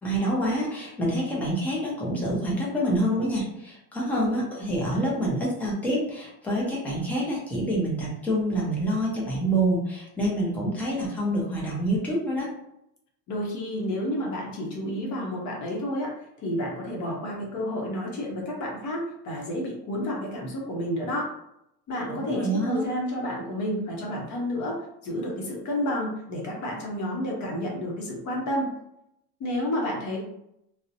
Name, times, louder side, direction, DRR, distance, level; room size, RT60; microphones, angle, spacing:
voice 1, 0.0-12.5 22.1-22.9, right 1 dB, 5° left, -5 dB, 0.3 m, -27 dB
voice 2, 13.3-21.3 21.9-28.7 29.4-30.2, equal, 40° left, -2 dB, 0.7 m, -30 dB
2.5 x 2.0 x 2.6 m, 0.80 s
cardioid pair, 145°, 44 cm